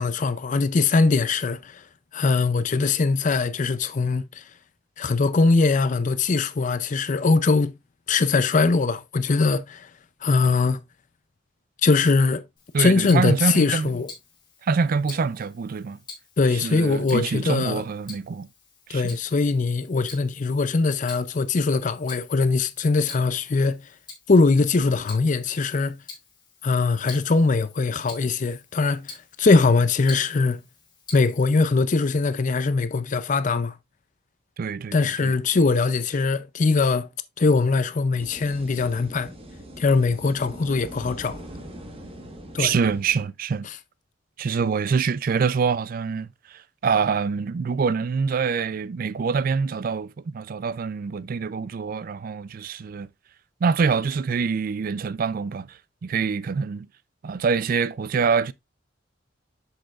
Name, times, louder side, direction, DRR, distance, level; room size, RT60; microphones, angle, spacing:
voice 1, 0.0-1.8 2.1-4.4 5.0-7.7 8.1-9.9 10.2-10.8 11.8-12.4 12.8-14.1 16.4-17.8 18.9-23.8 24.3-26.0 26.6-30.6 31.1-33.8 34.9-37.1 37.4-39.3 39.8-41.4 42.5-42.7 43.6-43.8, left 4 dB, 40° left, 0.5 m, -21 dB
Tick-tock, 12.6-31.6, left 4 dB, 25° left, 2.3 m, -47 dB
voice 2, 12.7-13.9 14.6-16.0 16.6-18.5 18.9-19.2 34.6-35.3 42.6-43.7 44.4-53.1 53.6-56.9 57.2-58.5, right 5 dB, 45° right, 0.3 m, -25 dB
sound 1, 38.2-43.2, equal, 30° right, 1.3 m, -41 dB
7.6 x 6.5 x 2.4 m
head